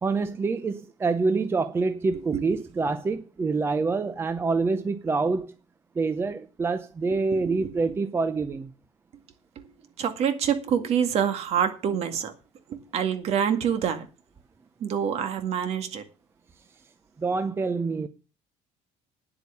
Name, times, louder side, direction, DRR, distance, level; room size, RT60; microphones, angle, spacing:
voice 1, 0.0-5.5 6.0-8.7 17.2-18.1, right 4 dB, 15° right, 0.6 m, -26 dB
voice 2, 7.3-7.7 10.0-12.3 12.7-14.1 14.8-16.0, right 8 dB, 45° right, 2.0 m, -26 dB
9.9 x 8.4 x 7.0 m
cardioid pair, 160°, 14 cm